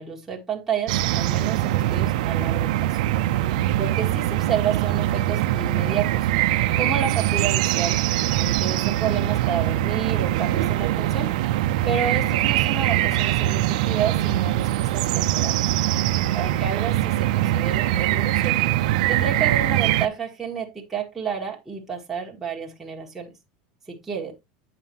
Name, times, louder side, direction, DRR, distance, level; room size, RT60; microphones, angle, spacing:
voice 1, 0.0-2.9 3.8-6.3 6.8-8.0 8.4-11.3 11.8-15.5 16.3-18.6 19.1-23.3 23.9-24.3, right 7 dB, 5° right, 1.5 m, -30 dB
sound 1, 0.9-20.1, right 14 dB, 75° right, 0.5 m, -22 dB
8.3 x 5.5 x 2.9 m
supercardioid pair, 165°, 4 cm